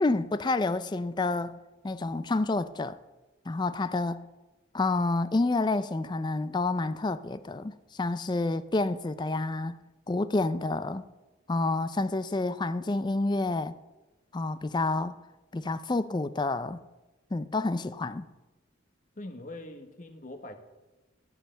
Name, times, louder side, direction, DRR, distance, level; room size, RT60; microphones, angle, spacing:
voice 1, 0.0-1.6 1.8-3.0 3.5-4.3 4.7-9.8 10.1-11.1 11.5-13.7 14.3-15.1 15.5-16.8 17.3-18.3, left 2 dB, 20° left, 0.4 m, -29 dB
voice 2, 19.2-20.5, left 1 dB, 40° left, 1.2 m, -42 dB
14.0 x 5.5 x 8.8 m
head